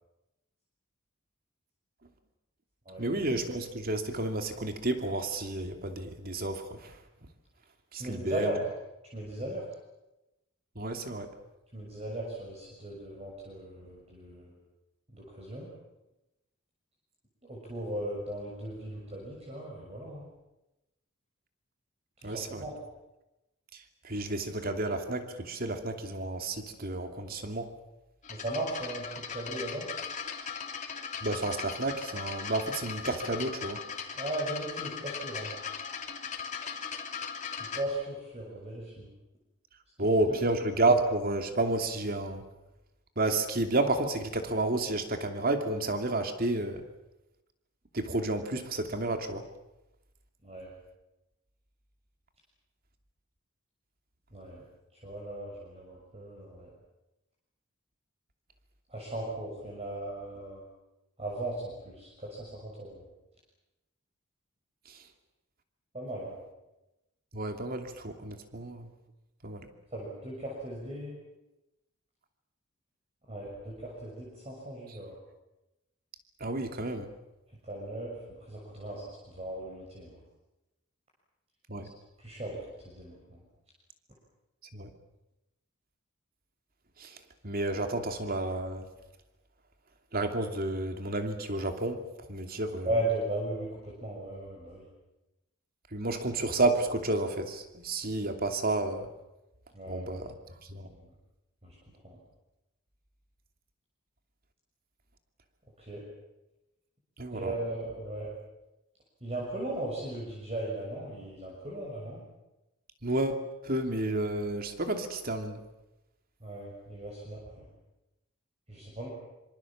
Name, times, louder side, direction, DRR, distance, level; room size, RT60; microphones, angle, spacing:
voice 1, 3.0-6.8 7.9-8.5 10.8-11.3 22.2-22.6 24.0-27.7 31.2-33.8 40.0-42.4 43.2-46.8 47.9-49.4 67.3-68.9 69.4-69.6 76.4-77.1 81.7-81.9 84.7-84.9 87.0-87.1 87.4-88.9 90.1-92.0 92.3-92.9 95.9-99.1 99.9-100.3 100.7-100.9 107.2-107.5 113.0-113.4 113.6-115.6, right 2 dB, 45° right, 6 dB, 2.7 m, -31 dB
voice 2, 8.0-8.6 9.1-9.6 11.7-14.6 15.1-15.7 17.4-20.3 22.2-22.7 28.3-29.9 34.1-35.5 37.5-39.1 40.0-40.4 50.4-50.7 54.3-54.6 55.0-56.7 58.9-60.6 61.2-63.0 65.9-66.3 69.9-71.2 73.3-75.2 77.6-80.2 82.2-83.4 92.8-94.9 99.7-100.2 100.9-101.0 101.6-101.8 102.0-102.2 105.8-106.0 107.3-108.3 109.2-112.2 116.4-117.6 118.7-119.1, right 1 dB, 30° right, -3 dB, 6.5 m, -37 dB
sound 1, 28.2-37.8, left 6 dB, 35° left, 3.3 m, -39 dB
26.0 x 26.0 x 7.4 m, 0.96 s
head